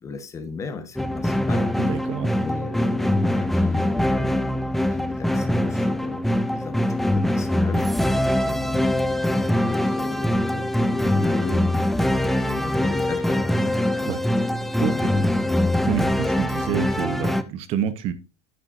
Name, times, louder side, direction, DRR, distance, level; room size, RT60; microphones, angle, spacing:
voice 1, 0.0-1.7 2.4-7.9 8.4-11.8 12.1-13.5 14.0-14.2 14.8-15.3, left 5 dB, 20° left, 9 dB, 1.2 m, -36 dB
sound 1, 1.0-17.4, left 1 dB, ahead, 0.5 m, -23 dB
voice 2, 1.8-2.3 14.0-14.2 14.8-15.1 15.9-18.1, right 9 dB, 45° right, 13 dB, 0.9 m, -28 dB
9.7 x 8.9 x 2.6 m, 0.28 s
cardioid pair, 160°, 15 cm